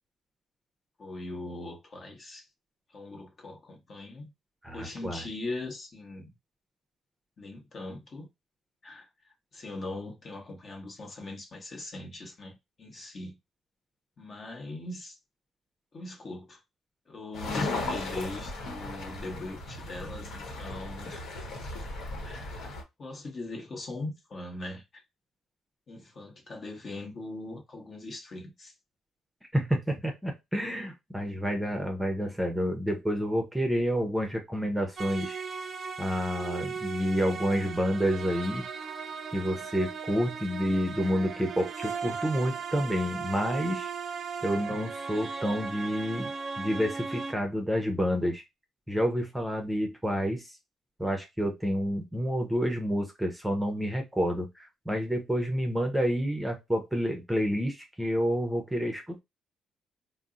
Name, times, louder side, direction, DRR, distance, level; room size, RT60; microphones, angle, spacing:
voice 1, 1.0-2.5 2.9-4.3 4.7-6.3 7.4-8.3 8.8-13.3 14.2-15.2 15.9-16.6 17.1-21.2 22.2-22.7 23.0-24.8 25.9-28.7, left 2 dB, 45° left, 1.0 m, -40 dB
voice 2, 4.6-5.2 29.5-35.4 36.0-38.7 39.3-43.9 44.4-48.4 48.9-50.6 51.0-59.2, equal, 5° right, 0.7 m, -29 dB
sound 1, 17.3-22.8, left 2 dB, 75° left, 1.0 m, -36 dB
sound 2, 35.0-47.3, right 5 dB, 50° right, 0.5 m, -37 dB
2.6 x 2.0 x 3.7 m
cardioid pair, 90°, 0 cm